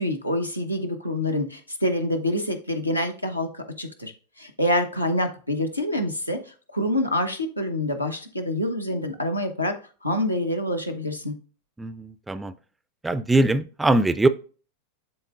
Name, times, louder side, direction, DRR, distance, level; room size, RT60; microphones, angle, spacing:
voice 1, 0.0-4.1 4.4-6.4 6.7-9.7 10.0-11.3, left 1 dB, 85° left, 4 dB, 0.9 m, -26 dB
voice 2, 11.8-12.5 13.0-14.3, right 2 dB, 10° right, 12 dB, 0.4 m, -22 dB
11.0 x 3.7 x 2.3 m, 0.38 s
figure-of-eight pair, 90°, 0 cm